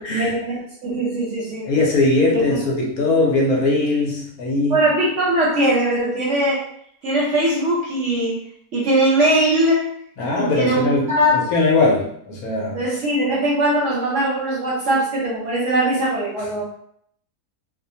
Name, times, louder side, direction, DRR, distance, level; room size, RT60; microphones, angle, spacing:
voice 1, 0.1-1.7 2.3-2.6 4.7-6.7 7.0-8.4 8.7-9.9 10.3-11.4 12.7-16.6, right 1 dB, 60° right, -5 dB, 0.9 m, -20 dB
voice 2, 1.6-4.8 10.2-12.8, left 2 dB, 70° left, -3 dB, 1.0 m, -20 dB
2.7 x 2.1 x 2.7 m, 0.67 s
omnidirectional pair, 1.7 m